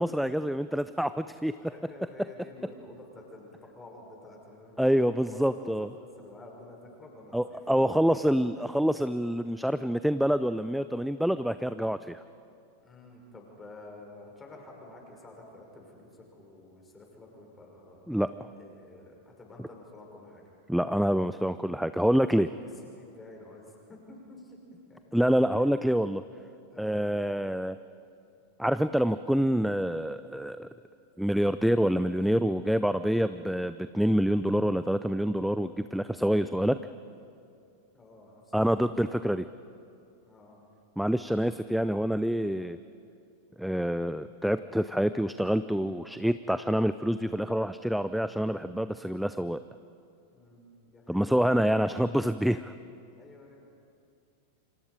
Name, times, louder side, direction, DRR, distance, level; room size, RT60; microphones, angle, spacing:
voice 1, 0.0-1.5 4.8-5.9 7.3-12.2 18.1-18.3 20.7-22.5 25.1-26.2 26.8-27.8 28.6-30.7 31.2-36.8 38.5-39.4 41.0-42.8 43.6-49.6 51.1-52.7, equal, ahead, 13 dB, 0.5 m, -26 dB
voice 2, 1.6-8.4 12.8-18.1 18.5-20.4 22.3-24.6 24.9-25.2 25.6-25.7 26.7-27.0 37.9-38.9 40.3-40.7 50.3-51.6 53.1-53.6, left 2 dB, 15° left, 0 dB, 5.9 m, -50 dB
28.5 x 26.0 x 5.1 m, 2.6 s
figure-of-eight pair, 90°, 0 cm